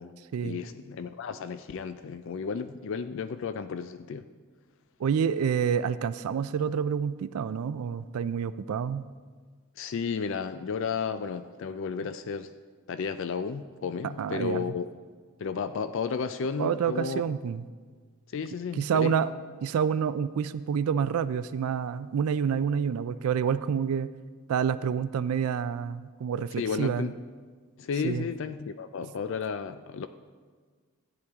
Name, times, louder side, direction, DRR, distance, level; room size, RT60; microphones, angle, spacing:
voice 1, 0.4-4.2 9.8-12.5 12.9-14.9 15.4-17.2 18.3-19.1 26.6-27.2 27.8-30.1, left 6 dB, 55° left, 11 dB, 0.4 m, -33 dB
voice 2, 5.0-9.1 14.2-14.6 16.6-17.6 18.8-19.3 19.6-24.1 24.5-27.1 28.0-28.3, right 7 dB, 75° right, 14 dB, 0.3 m, -28 dB
14.0 x 9.8 x 3.5 m, 1.5 s
head